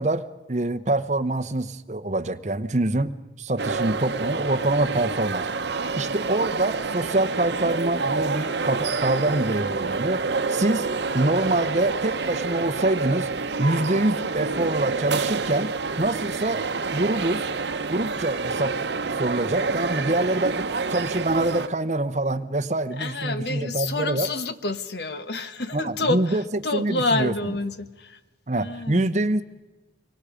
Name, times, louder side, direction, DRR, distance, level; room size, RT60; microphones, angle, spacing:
voice 1, 0.0-10.2 10.5-10.9 11.1-13.3 13.6-15.7 16.0-16.6 16.9-17.4 17.9-18.7 19.1-24.3 25.7-26.4 26.7-27.3 28.5-29.4, right 2 dB, 40° right, 0.8 m, -25 dB
sound 1, 3.6-21.7, right 4 dB, 80° right, 0.9 m, -28 dB
voice 2, 23.0-28.2 28.5-29.2, left 2 dB, 70° left, 1.2 m, -28 dB
25.0 x 24.0 x 5.1 m
head